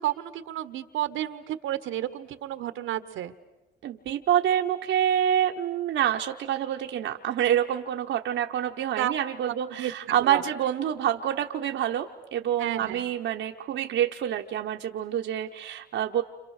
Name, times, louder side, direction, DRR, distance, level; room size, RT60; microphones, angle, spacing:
voice 1, 0.0-3.3 9.0-9.2 9.7-10.4 12.6-13.1, right 13 dB, 85° right, 11 dB, 1.3 m, -31 dB
voice 2, 3.8-16.2, right 10 dB, 70° right, 3 dB, 1.1 m, -27 dB
30.0 x 27.5 x 6.6 m, 1.0 s
cardioid pair, 90°, 20 cm